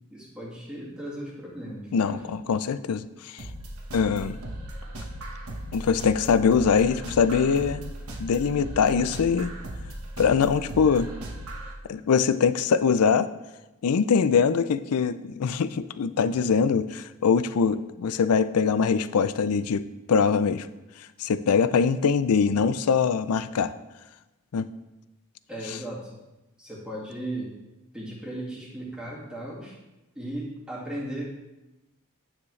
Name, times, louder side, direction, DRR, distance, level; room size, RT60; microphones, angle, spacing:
voice 1, 0.1-2.2 25.5-26.2 26.6-27.5 27.9-29.8 30.1-31.2, right 1 dB, 5° right, -6 dB, 2.0 m, -36 dB
voice 2, 1.9-3.4 3.9-4.4 5.7-7.9 8.2-9.5 10.2-11.1 11.9-13.3 13.8-19.8 20.1-20.7 21.2-23.7 24.5-24.7, left 6 dB, 90° left, 14 dB, 0.4 m, -23 dB
sound 1, 3.4-11.7, right 1 dB, 80° right, 1.2 m, -37 dB
9.7 x 7.1 x 3.2 m, 1.0 s
head